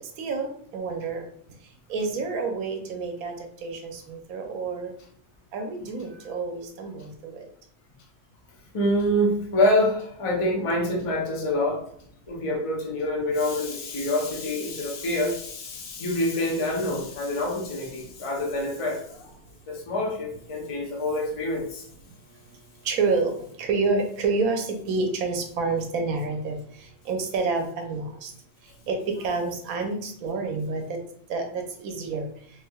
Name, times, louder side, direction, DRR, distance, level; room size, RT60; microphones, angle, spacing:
voice 1, 0.2-1.3 1.9-3.3 3.6-4.9 5.5-7.3 22.8-23.3 23.6-26.6 27.1-28.3 28.9-31.0 31.3-32.3, right 4 dB, 70° right, 4 dB, 1.0 m, -28 dB
voice 2, 8.7-11.8 12.3-19.4 19.7-21.9, left 1 dB, 60° left, 0 dB, 0.3 m, -26 dB
3.3 x 3.2 x 2.2 m, 0.62 s
omnidirectional pair, 1.6 m